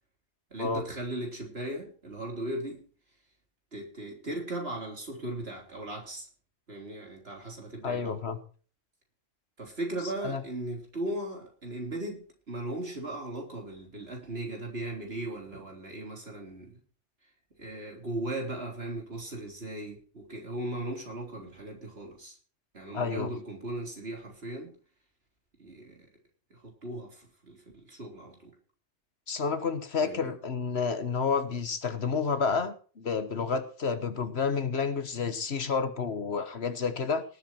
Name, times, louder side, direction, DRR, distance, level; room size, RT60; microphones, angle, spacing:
voice 1, 0.5-2.8 3.7-6.3 6.7-8.2 9.6-16.8 17.6-22.4 22.7-24.7 25.6-26.1 26.5-28.5 30.0-30.3, right 1 dB, 55° right, 1 dB, 4.1 m, -37 dB
voice 2, 7.8-8.4 10.2-10.4 22.9-23.3 29.3-37.2, left 5 dB, 60° left, 11 dB, 1.5 m, -30 dB
19.0 x 8.3 x 4.4 m, 0.40 s
omnidirectional pair, 1.2 m